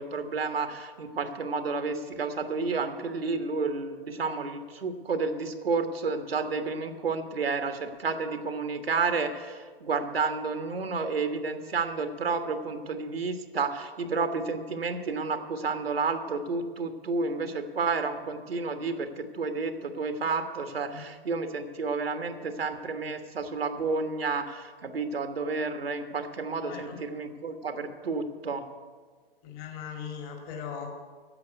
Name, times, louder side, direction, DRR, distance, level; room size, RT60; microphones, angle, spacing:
voice 1, 0.0-28.6, right 4 dB, 85° right, 7 dB, 1.4 m, -31 dB
voice 2, 26.7-27.0 29.4-30.9, left 7 dB, 30° left, 3 dB, 2.0 m, -39 dB
10.5 x 7.5 x 9.2 m, 1.5 s
hypercardioid pair, 125°, 29 cm